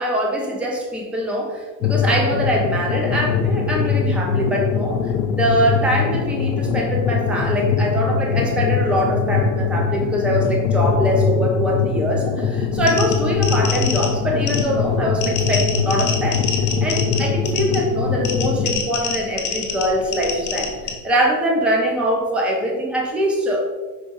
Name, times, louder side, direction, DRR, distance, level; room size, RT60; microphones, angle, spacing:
voice 1, 0.0-5.1 5.4-16.4 16.8-23.6, equal, 5° right, 0 dB, 0.4 m, -23 dB
sound 1, 1.8-18.7, left 5 dB, 70° left, 0.7 m, -22 dB
sound 2, 12.7-20.9, left 6 dB, 25° left, 1.0 m, -28 dB
5.3 x 3.4 x 5.3 m, 1.3 s
supercardioid pair, 160°, 42 cm